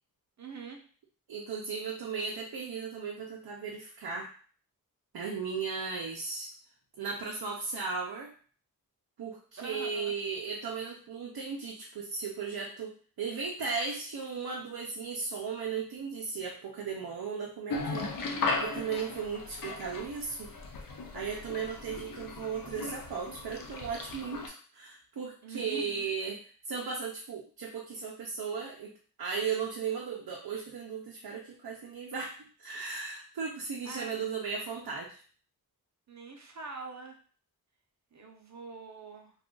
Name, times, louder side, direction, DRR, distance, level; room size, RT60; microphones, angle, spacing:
voice 1, 0.4-0.8 9.6-10.1 25.4-26.1 33.8-34.2 36.1-37.2 38.1-39.3, right 4 dB, 50° right, 3 dB, 0.7 m, -44 dB
voice 2, 1.3-4.3 5.1-6.5 7.0-8.3 9.2-18.1 18.6-20.5 21.1-26.4 26.7-28.9 29.2-35.2, right 5 dB, 85° right, -1 dB, 0.6 m, -36 dB
sound 1, 17.7-24.5, left 3 dB, 65° left, 0.6 m, -37 dB
2.4 x 2.4 x 3.7 m, 0.42 s
wide cardioid pair, 105°, 36 cm